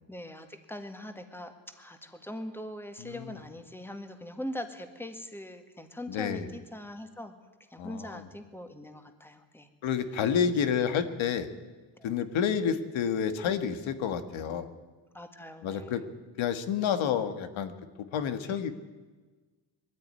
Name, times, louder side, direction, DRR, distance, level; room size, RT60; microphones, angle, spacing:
voice 1, 0.1-7.3 7.7-9.7 12.0-12.1 15.1-16.0 18.5-18.6, left 1 dB, 5° left, 7 dB, 1.8 m, -42 dB
voice 2, 3.0-3.4 6.1-6.5 7.8-8.3 9.8-11.5 12.0-14.7 15.6-16.0 16.4-17.7 18.1-18.7, left 7 dB, 85° left, 9 dB, 1.7 m, -29 dB
21.0 x 14.5 x 9.8 m, 1.3 s
cardioid pair, 125°, 46 cm